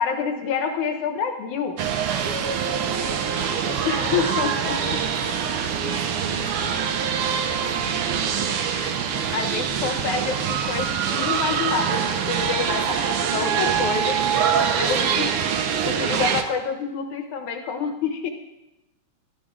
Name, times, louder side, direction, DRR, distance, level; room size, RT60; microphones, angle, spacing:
voice 1, 0.0-1.8 3.9-5.0 5.4-5.5 8.7-8.9 9.3-14.2 14.8-15.3 15.8-18.3, left 6 dB, 70° left, 5 dB, 2.3 m, -27 dB
sound 1, 1.8-16.4, right 7 dB, 90° right, 1.2 m, -24 dB
voice 2, 2.8-8.4 9.1-9.4 14.5-16.4, left 4 dB, 35° left, 0 dB, 1.6 m, -43 dB
17.0 x 13.0 x 3.7 m, 0.93 s
omnidirectional pair, 3.8 m